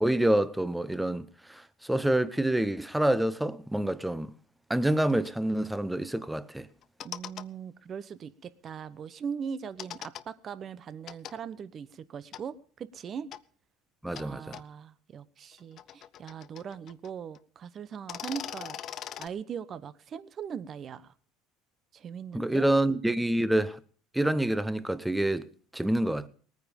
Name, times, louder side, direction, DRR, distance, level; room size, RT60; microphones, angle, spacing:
voice 1, 0.0-4.3 4.7-6.7 14.0-14.6 22.3-23.8 24.1-25.5 25.7-26.3, right 1 dB, 5° right, 0.9 m, -27 dB
sound 1, 5.1-5.3 6.8-7.5 9.8-10.2 11.1-11.3 12.3-12.4 13.3-13.4 14.2-14.3 14.5-14.6 15.5-17.1 17.4-17.5 17.9-19.3, left 11 dB, 50° left, 0.6 m, -41 dB
voice 2, 7.0-13.3 14.1-18.8 19.2-21.1 21.9-22.7, right 7 dB, 40° right, 1.0 m, -40 dB
19.5 x 9.6 x 5.3 m
supercardioid pair, 95°, 0 cm